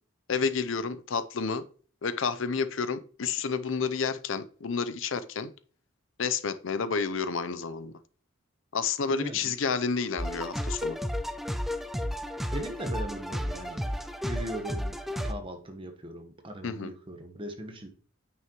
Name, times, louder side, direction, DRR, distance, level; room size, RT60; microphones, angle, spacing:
voice 1, 0.3-1.6 2.0-5.5 6.2-7.9 8.7-11.0 16.6-16.9, left 5 dB, 70° left, 0.6 m, -30 dB
voice 2, 9.1-9.5 12.5-14.9 15.2-17.9, right 1 dB, 25° right, 1.2 m, -39 dB
sound 1, 10.2-15.3, equal, ahead, 0.4 m, -32 dB
9.1 x 6.2 x 3.0 m
head